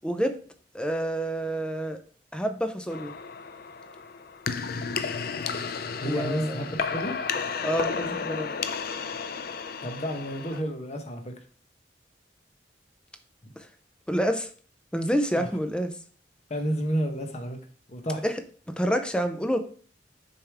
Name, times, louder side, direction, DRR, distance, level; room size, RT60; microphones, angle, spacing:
voice 1, 0.0-0.4 0.7-2.0 2.3-3.1 6.0-6.6 7.6-8.6 13.6-13.7 14.1-14.5 14.9-15.9 18.2-18.4 18.7-19.6, equal, 5° left, 0.6 m, -28 dB
sound 1, 2.9-10.6, left 5 dB, 55° left, 0.5 m, -33 dB
voice 2, 6.0-7.2 9.8-11.3 13.4-13.5 15.4-15.5 16.5-17.6 17.9-18.2, equal, 40° left, 1.0 m, -30 dB
6.7 x 4.8 x 3.5 m
head